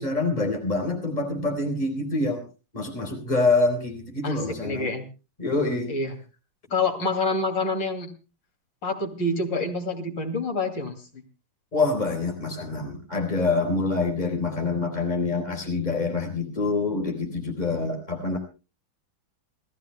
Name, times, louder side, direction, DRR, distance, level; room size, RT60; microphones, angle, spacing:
voice 1, 0.0-2.4 2.7-4.9 5.4-6.0 11.7-18.4, left 3 dB, 20° left, 3 dB, 3.9 m, -26 dB
voice 2, 4.2-5.1 5.9-6.2 6.7-8.1 8.8-11.0, left 2 dB, 70° left, 4 dB, 3.5 m, -27 dB
27.5 x 15.0 x 2.2 m, 0.32 s
omnidirectional pair, 2.1 m